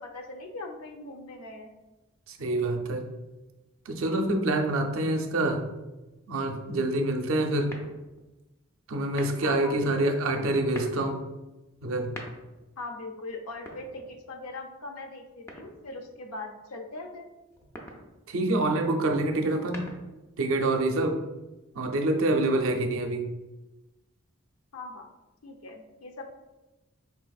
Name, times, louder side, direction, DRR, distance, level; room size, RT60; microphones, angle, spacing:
voice 1, 0.0-1.7 9.4-9.9 12.8-17.3 24.7-25.1 25.4-26.3, left 2 dB, 85° left, 3 dB, 0.6 m, -40 dB
voice 2, 2.3-3.1 3.9-5.6 6.3-7.7 8.9-11.2 11.8-12.1 18.3-19.9 20.4-21.2 21.7-23.3, right 2 dB, 70° right, 4 dB, 0.5 m, -26 dB
sound 1, 7.7-8.3 9.0-9.6 10.5-11.1 11.9-12.7 13.5-14.4 15.5-16.1 17.5-18.1 19.4-20.3, equal, 10° left, 0.4 m, -44 dB
4.7 x 3.3 x 2.3 m, 1.1 s
head